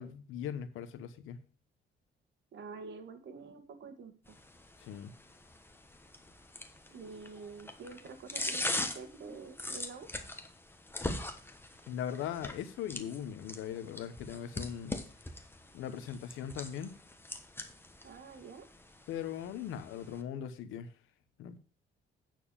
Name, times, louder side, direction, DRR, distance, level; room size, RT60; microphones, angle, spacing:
voice 1, 0.0-1.4 4.8-5.1 11.9-15.0 15.7-16.9 19.1-20.9 21.4-21.6, left 9 dB, 90° left, 1.1 m, -39 dB
voice 2, 2.5-4.4 6.9-10.1 18.0-18.7, right 4 dB, 65° right, 1.8 m, -47 dB
sound 1, 4.3-20.2, left 2 dB, 10° left, 1.2 m, -42 dB
9.2 x 4.6 x 7.0 m
cardioid pair, 90°, 20 cm